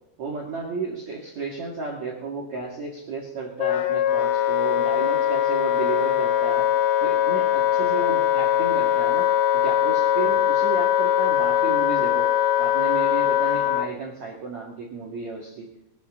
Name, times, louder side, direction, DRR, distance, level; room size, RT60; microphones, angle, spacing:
voice 1, 0.2-6.7 7.0-15.7, right 4 dB, 50° right, -2 dB, 2.3 m, -33 dB
Wind instrument woodwind instrument, 3.6-13.9, left 11 dB, 85° left, 2.2 m, -21 dB
20.5 x 13.0 x 3.7 m, 0.87 s
omnidirectional pair, 5.9 m